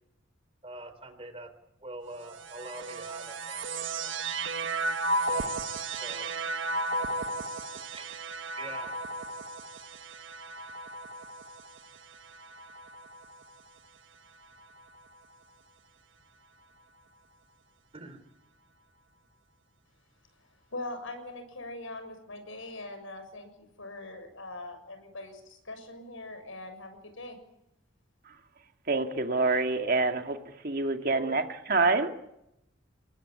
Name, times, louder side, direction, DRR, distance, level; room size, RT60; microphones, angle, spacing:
voice 1, 0.6-1.5 1.8-4.2 5.2-5.6 6.0-6.3 7.9-8.1 8.6-8.9 17.9-18.2 30.8-31.4, right 2 dB, 25° right, 10 dB, 3.9 m, -44 dB
sound 1, 2.2-13.7 14.4-15.2, right 2 dB, 65° right, 1.5 m, -35 dB
voice 2, 20.7-27.4, left 2 dB, 75° left, 8 dB, 6.9 m, -42 dB
voice 3, 28.9-30.4 30.6-32.1, right 3 dB, 45° right, 5 dB, 2.3 m, -26 dB
29.5 x 20.0 x 9.9 m, 0.85 s
head